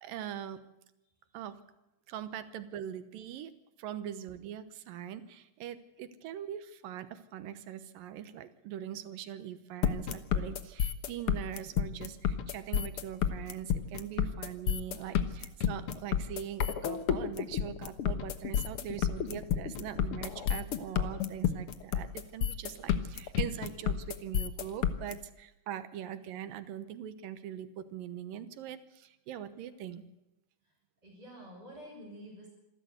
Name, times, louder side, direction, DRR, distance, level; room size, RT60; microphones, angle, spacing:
voice 1, 0.0-0.6 1.3-1.6 2.1-3.5 3.8-30.0, right 10 dB, 85° right, 11 dB, 2.8 m, -42 dB
sound 1, 9.8-25.1, left 8 dB, 60° left, 1.5 m, -30 dB
voice 2, 31.0-32.5, equal, 10° right, -5 dB, 6.3 m, -49 dB
26.5 x 13.0 x 8.1 m, 0.92 s
omnidirectional pair, 3.9 m